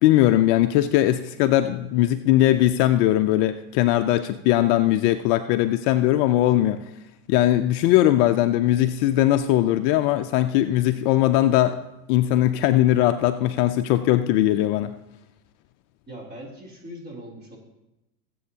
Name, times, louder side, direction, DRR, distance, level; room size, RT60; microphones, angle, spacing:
voice 1, 0.0-6.8 7.3-11.8 12.1-15.0, left 14 dB, 50° left, 9 dB, 0.5 m, -20 dB
voice 2, 16.1-17.6, equal, 20° right, -1 dB, 3.2 m, -40 dB
20.5 x 7.8 x 2.8 m, 0.93 s
hypercardioid pair, 100°, 48 cm